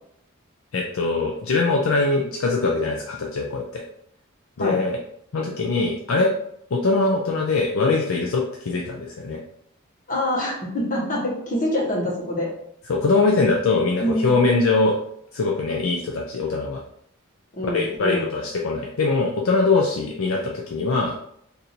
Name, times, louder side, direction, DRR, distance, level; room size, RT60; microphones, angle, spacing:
voice 1, 0.7-3.8 4.6-5.0 5.3-6.3 6.7-9.4 12.9-15.0 15.3-16.8 17.7-21.2, left 3 dB, 65° left, 0 dB, 0.4 m, -22 dB
voice 2, 10.1-12.5 14.0-14.3 17.5-18.3, equal, 40° left, -4 dB, 1.2 m, -25 dB
2.6 x 2.6 x 4.2 m, 0.70 s
head